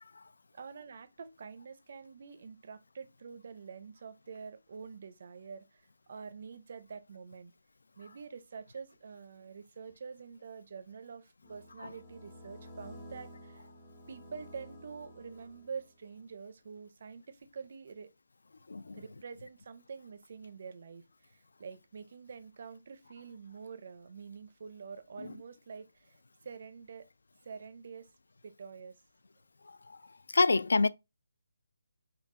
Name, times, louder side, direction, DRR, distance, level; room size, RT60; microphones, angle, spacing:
voice 1, 0.5-7.5 8.0-13.7 14.1-18.1 18.9-27.1 27.4-28.1 28.4-29.0, right 5 dB, 40° right, 0.4 m, -47 dB
sound 1, 11.4-16.1, equal, 10° left, 0.5 m, -52 dB
voice 2, 18.7-19.0 29.7-30.0 30.3-30.9, left 3 dB, 80° left, 0.3 m, -27 dB
5.4 x 2.3 x 2.5 m
hypercardioid pair, 175°, 0 cm